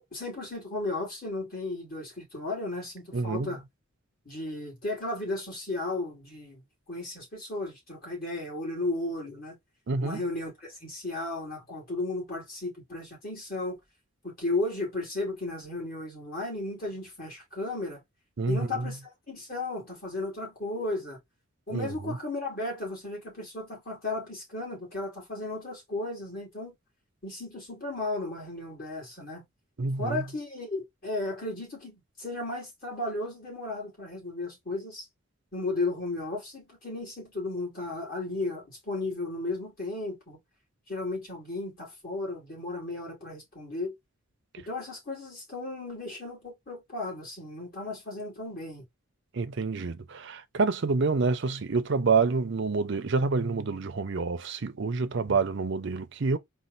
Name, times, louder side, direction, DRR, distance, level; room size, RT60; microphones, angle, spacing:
voice 1, 0.0-3.6 4.2-6.6 6.9-9.6 10.0-13.8 14.2-18.0 18.5-19.0 19.3-21.2 21.7-26.7 27.2-29.5 30.0-35.0 35.5-40.4 40.9-43.9 44.7-48.8 55.3-55.4, left 2 dB, 40° left, 2.8 m, -34 dB
voice 2, 3.1-3.5 9.9-10.2 18.4-18.9 21.7-21.9 29.8-30.2 49.3-56.4, right 4 dB, 55° right, 0.5 m, -27 dB
4.3 x 2.4 x 3.9 m
head